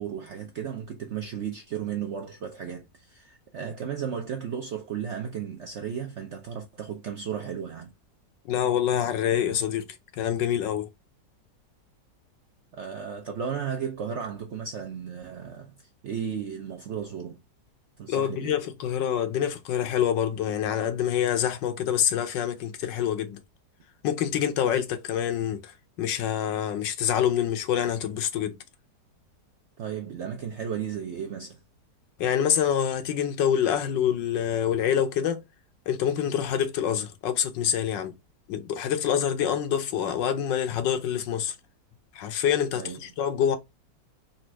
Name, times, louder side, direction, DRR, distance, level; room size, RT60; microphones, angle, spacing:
voice 1, 0.0-7.9 12.7-17.4 18.0-18.6 29.8-31.6 42.7-43.0, right 7 dB, 70° right, 0.6 m, -34 dB
voice 2, 8.4-9.8 10.1-10.9 18.1-23.4 24.0-25.7 26.0-28.6 32.2-35.4 35.9-38.1 38.5-41.6 42.1-43.6, left 9 dB, 85° left, 1.5 m, -26 dB
4.1 x 2.5 x 4.4 m
omnidirectional pair, 1.9 m